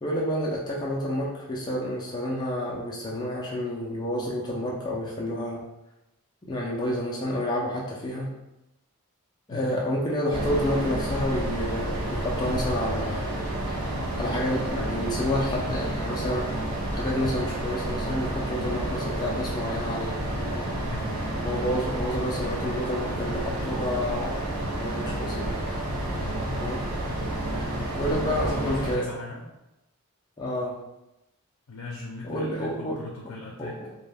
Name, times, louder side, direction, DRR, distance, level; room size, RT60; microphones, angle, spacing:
voice 1, 0.0-5.6 6.5-8.3 9.5-13.3 14.2-16.6 16.9-20.1 20.4-20.6 21.4-25.5 26.6-26.9 28.0-29.1 30.4-30.7 32.2-33.0 33.6-34.0, left 1 dB, 20° left, -4 dB, 0.3 m, -29 dB
voice 2, 9.5-9.8 20.9-21.2 26.2-26.5 28.1-29.4 31.7-33.8, left 3 dB, 90° left, -2 dB, 0.5 m, -39 dB
Air Extractor Fan Public Toilets A, 10.3-29.0, right 1 dB, 80° right, 0.6 m, -30 dB
2.2 x 2.1 x 3.2 m, 0.93 s
head